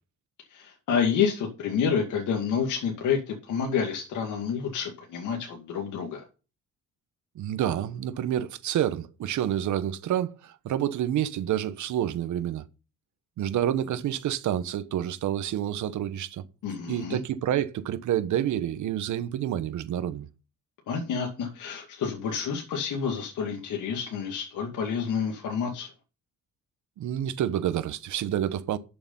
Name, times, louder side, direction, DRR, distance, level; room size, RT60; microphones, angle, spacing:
voice 1, 0.5-6.2 16.6-17.2 20.9-25.9, left 6 dB, 80° left, 2.3 m, -29 dB
voice 2, 7.3-12.6 13.4-16.4 16.9-20.3 27.0-28.8, right 11 dB, 75° right, 1.2 m, -28 dB
11.0 x 6.9 x 5.5 m
cardioid pair, 90°, 30 cm